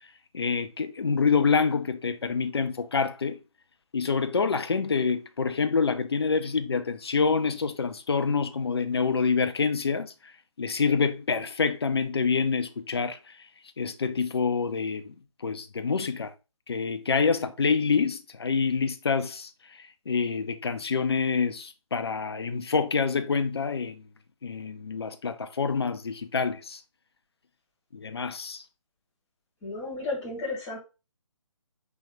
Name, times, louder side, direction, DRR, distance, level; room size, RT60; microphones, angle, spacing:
voice 1, 0.3-3.4 3.9-10.1 10.6-13.2 13.8-15.1 15.4-16.3 16.7-19.5 20.1-24.0 24.4-26.8 27.9-28.6, left 5 dB, 50° left, 0.5 m, -26 dB
voice 2, 29.6-30.8, left 3 dB, 10° left, 1.2 m, -33 dB
4.5 x 3.1 x 3.4 m
figure-of-eight pair, 145°, 17 cm